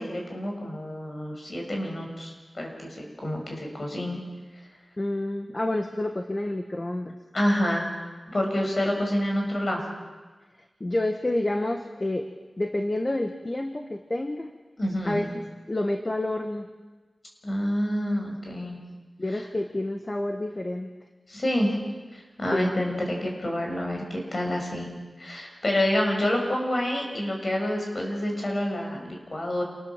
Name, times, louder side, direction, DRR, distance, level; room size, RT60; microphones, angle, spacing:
voice 1, 0.0-4.2 7.3-7.9 8.3-9.8 14.8-15.2 17.4-18.8 19.3-19.4 21.3-21.8 22.1-24.9 25.2-29.6, left 1 dB, 50° left, 1 dB, 6.7 m, -28 dB
voice 2, 5.0-7.1 10.8-12.3 12.6-14.5 15.0-15.3 15.7-16.7 19.2-20.9 22.5-22.7, left 1 dB, 30° left, 5 dB, 1.4 m, -28 dB
28.5 x 19.5 x 7.4 m, 1.3 s
wide cardioid pair, 75°, 0 cm